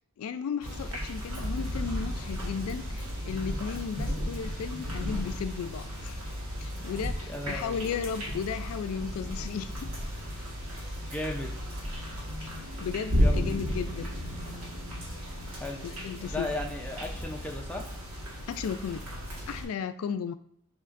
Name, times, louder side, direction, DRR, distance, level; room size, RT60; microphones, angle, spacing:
voice 1, 0.2-6.2 6.6-9.9 12.8-14.1 15.8-16.5 18.5-19.0 19.5-20.3, left 6 dB, 80° left, 12 dB, 0.3 m, -35 dB
sound 1, 0.6-19.6, equal, 75° right, 1.7 m, -34 dB
voice 2, 7.3-7.8 11.0-11.5 13.1-13.5 15.5-15.9 16.2-17.8, left 1 dB, 5° left, 1 dB, 0.5 m, -36 dB
6.6 x 3.0 x 2.5 m, 0.69 s
head